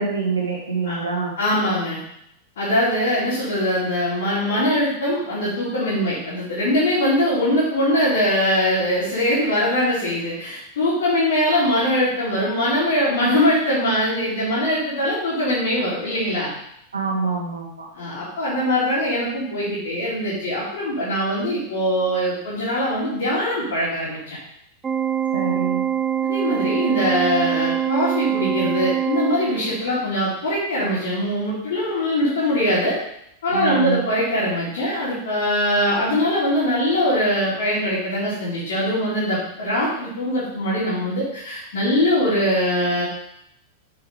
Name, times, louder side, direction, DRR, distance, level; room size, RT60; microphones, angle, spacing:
voice 1, 0.0-1.3 16.9-17.9 25.3-25.8 33.5-34.0, right 4 dB, 75° right, -2 dB, 2.6 m, -25 dB
voice 2, 1.4-2.0 2.6-16.5 17.9-24.4 26.2-33.0 33.4-43.0, left 1 dB, 60° left, -9 dB, 3.0 m, -22 dB
Organ, 24.8-29.9, right 9 dB, 20° right, 0.5 m, -24 dB
7.1 x 6.1 x 5.3 m, 0.76 s
figure-of-eight pair, 90°, 0 cm